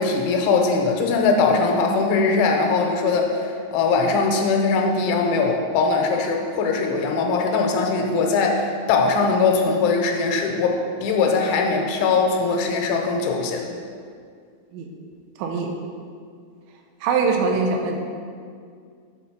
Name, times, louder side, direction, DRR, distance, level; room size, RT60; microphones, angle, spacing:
voice 1, 0.0-13.7 17.5-17.7, left 4 dB, 85° left, 2 dB, 3.0 m, -21 dB
voice 2, 17.0-18.0, right 5 dB, 85° right, 2 dB, 3.1 m, -22 dB
8.5 x 4.0 x 5.9 m, 2.2 s
omnidirectional pair, 5.5 m